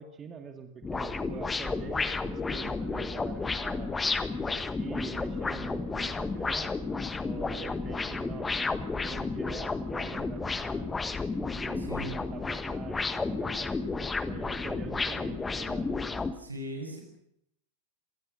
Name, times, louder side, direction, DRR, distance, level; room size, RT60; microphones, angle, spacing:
voice 1, 0.0-3.9 4.6-6.7 7.2-10.9 11.5-13.8 14.2-16.0, right 6 dB, 25° right, 7 dB, 2.1 m, -44 dB
sound 1, 0.8-16.3, left 4 dB, 10° left, 1.4 m, -32 dB
voice 2, 11.7-12.2 16.4-17.0, right 1 dB, 80° right, 4 dB, 6.7 m, -39 dB
26.5 x 19.0 x 6.4 m, 0.72 s
figure-of-eight pair, 90°, 0 cm